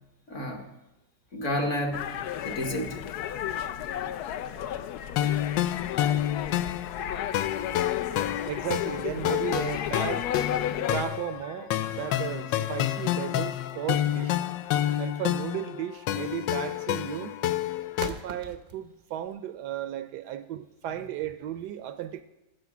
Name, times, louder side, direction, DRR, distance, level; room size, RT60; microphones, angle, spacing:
voice 1, 0.3-0.7 1.3-2.0 2.4-3.0 5.8-5.9 7.3-7.7 8.1-8.2 12.1-12.2 14.4-14.6 14.8-15.0, left 1 dB, 50° left, 1.3 m, -32 dB
sound 1, 1.9-11.0, left 10 dB, 70° left, 1.0 m, -33 dB
sound 2, 5.2-18.1, left 12 dB, 90° left, 1.3 m, -29 dB
voice 2, 8.5-10.3 10.9-14.4 15.0-17.4 18.0-22.2, right 11 dB, 75° right, 1.1 m, -35 dB
sound 3, 13.6-19.3, right 5 dB, 55° right, 0.5 m, -44 dB
15.5 x 6.5 x 5.9 m
omnidirectional pair, 1.9 m